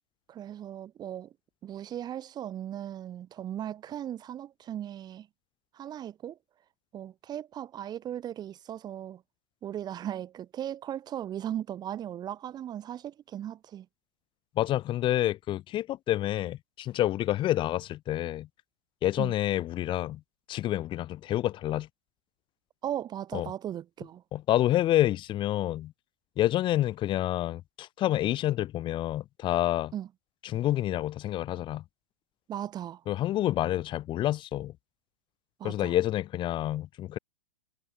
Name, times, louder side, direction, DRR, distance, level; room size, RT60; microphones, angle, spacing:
voice 1, 0.3-1.3 1.6-5.3 5.7-6.4 6.9-9.2 9.6-13.9 19.2-19.3 22.8-24.2 29.9-30.1 32.5-33.0 35.6-35.9, right 10 dB, 25° right, 4.0 m, -37 dB
voice 2, 14.6-18.5 19.0-20.2 20.5-21.9 23.3-23.5 24.3-25.9 26.4-29.9 30.4-31.8 33.1-34.7 35.6-37.2, left 14 dB, 30° left, 6.0 m, -28 dB
hypercardioid pair, 120°, 16 cm